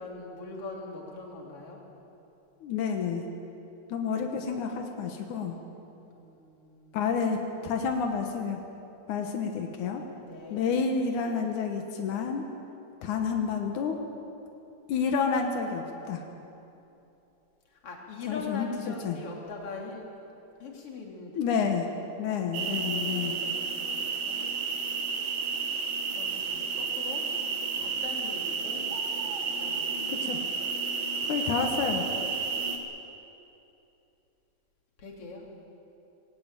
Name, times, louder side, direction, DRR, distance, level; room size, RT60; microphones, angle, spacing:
voice 1, 0.0-1.8 5.9-7.0 10.3-10.8 17.7-20.3 20.6-21.5 22.2-24.0 24.2-24.5 26.1-27.3 27.7-28.8 29.2-29.3 29.6-30.2 35.0-35.5, left 4 dB, 50° left, -1 dB, 3.8 m, -42 dB
voice 2, 2.6-3.2 3.9-5.6 6.9-8.6 9.1-10.0 10.5-12.4 13.0-14.0 14.9-16.2 18.3-18.7 19.0-19.2 21.4-21.9 22.2-23.4 30.1-30.5 31.2-32.1, left 5 dB, 90° left, 3 dB, 2.8 m, -29 dB
sound 1, 22.5-32.8, right 5 dB, 85° right, 3.1 m, -31 dB
20.5 x 17.5 x 8.9 m, 2.9 s
omnidirectional pair, 3.4 m